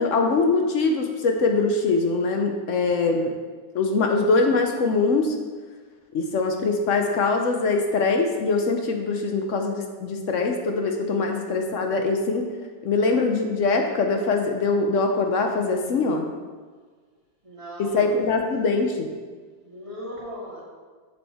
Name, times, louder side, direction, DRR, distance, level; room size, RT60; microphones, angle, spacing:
voice 1, 0.0-3.4 3.7-5.4 6.1-12.5 12.8-16.3 17.8-19.1, left 3 dB, 60° left, 4 dB, 0.9 m, -23 dB
voice 2, 17.4-18.1 19.6-20.6, equal, 20° right, -5 dB, 1.7 m, -38 dB
7.5 x 7.0 x 3.4 m, 1.5 s
omnidirectional pair, 1.6 m